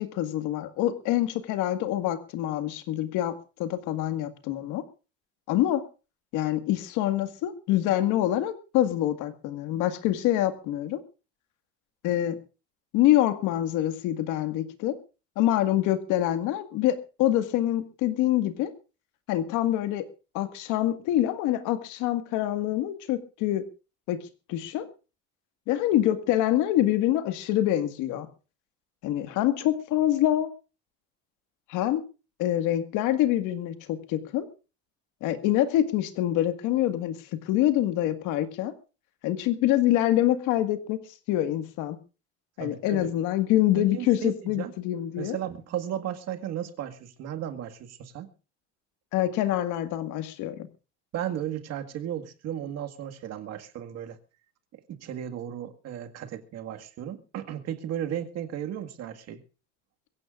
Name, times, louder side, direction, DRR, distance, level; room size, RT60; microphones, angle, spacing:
voice 1, 0.0-4.8 5.5-5.8 6.3-11.0 12.0-12.4 12.9-14.9 15.4-18.7 19.3-20.0 20.3-23.6 24.1-24.2 24.5-24.9 25.7-28.3 29.0-30.5 31.7-32.0 32.4-34.5 35.2-38.7 39.2-41.0 41.3-42.0 42.6-45.4 49.1-50.7, left 13 dB, 75° left, 1.9 m, -25 dB
voice 2, 42.6-43.1 43.8-44.7 45.2-48.3 51.1-54.2 54.9-59.4, right 10 dB, 55° right, 2.0 m, -35 dB
23.0 x 16.0 x 2.5 m
cardioid pair, 135°, 31 cm